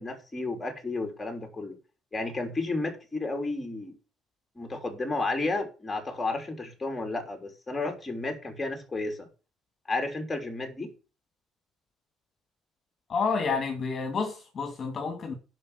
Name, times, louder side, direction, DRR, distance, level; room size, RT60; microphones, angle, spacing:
voice 1, 0.0-1.8 2.1-3.9 4.6-9.3 9.9-10.9, left 2 dB, 15° left, 3.4 m, -32 dB
voice 2, 13.1-15.3, left 4 dB, 35° left, 2.4 m, -29 dB
11.0 x 5.8 x 8.2 m
cardioid pair, 125°, 0 cm